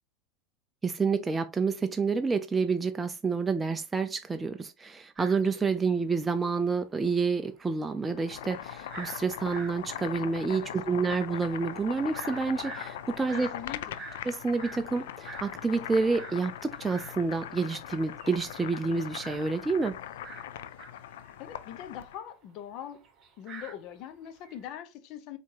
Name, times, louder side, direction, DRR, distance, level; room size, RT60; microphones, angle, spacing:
voice 1, 0.8-13.5 14.3-20.0, right 4 dB, 15° right, 0.4 m, -29 dB
sound 1, 5.2-6.4 6.7-6.8 7.0-17.2 17.6-24.6, right 4 dB, 35° right, 1.8 m, -48 dB
Boiling, 8.1-22.2, left 11 dB, 85° left, 0.4 m, -41 dB
voice 2, 13.3-14.1 21.4-23.0 23.4-25.4, left 10 dB, 50° left, 0.8 m, -42 dB
4.7 x 3.4 x 2.8 m
supercardioid pair, 130°, 0 cm